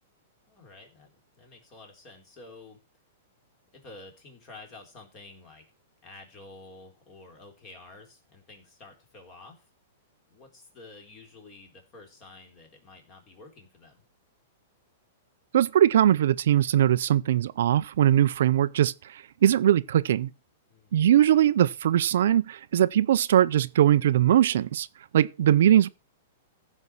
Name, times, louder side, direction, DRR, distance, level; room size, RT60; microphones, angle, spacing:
voice 1, 0.5-2.8 3.7-5.6 6.0-9.7 10.3-14.0 20.7-21.1, left 2 dB, 25° left, 3.9 m, -50 dB
voice 2, 15.5-20.3 20.9-24.9 25.1-25.9, right 11 dB, 65° right, 0.5 m, -21 dB
15.5 x 5.4 x 6.1 m
supercardioid pair, 170°, 0 cm